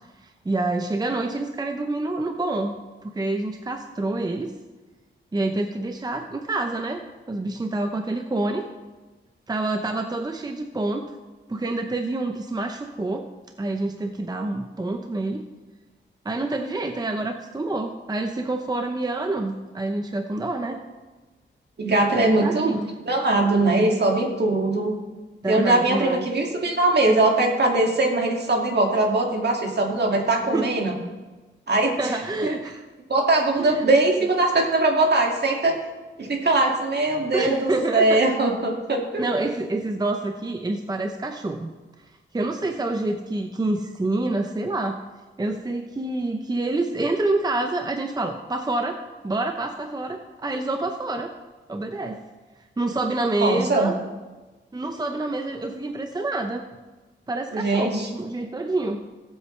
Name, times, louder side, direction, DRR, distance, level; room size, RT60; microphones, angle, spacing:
voice 1, 0.2-2.7 3.0-4.5 5.3-8.7 9.5-11.1 11.5-13.3 13.6-15.5 16.2-20.8 22.1-22.9 25.4-26.3 30.5-30.7 32.0-32.8 33.6-33.9 37.3-38.2 39.2-41.7 42.3-45.0 45.4-49.0 49.2-51.3 51.7-52.2 52.8-54.0 54.7-56.6 57.3-59.0, right 2 dB, 20° right, 5 dB, 0.7 m, -27 dB
voice 2, 21.8-22.7 23.1-24.9 25.5-31.0 31.7-32.0 32.4-32.5 33.1-35.8 36.2-39.2 53.4-53.9 57.5-58.1, right 2 dB, 55° right, 1 dB, 2.2 m, -21 dB
20.5 x 8.0 x 3.3 m, 1.2 s
wide cardioid pair, 125°, 20 cm